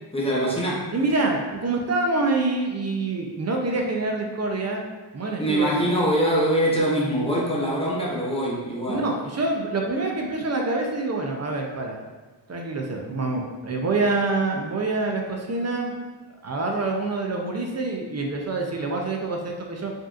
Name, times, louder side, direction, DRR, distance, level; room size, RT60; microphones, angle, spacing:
voice 1, 0.1-0.9 5.4-9.1, right 1 dB, 15° left, -5 dB, 0.7 m, -23 dB
voice 2, 0.9-4.9 5.1-5.7 8.9-12.0 12.5-15.9 16.4-19.9, right 3 dB, 35° right, 1 dB, 0.4 m, -26 dB
4.9 x 2.7 x 2.4 m, 1.2 s
wide cardioid pair, 170°, 46 cm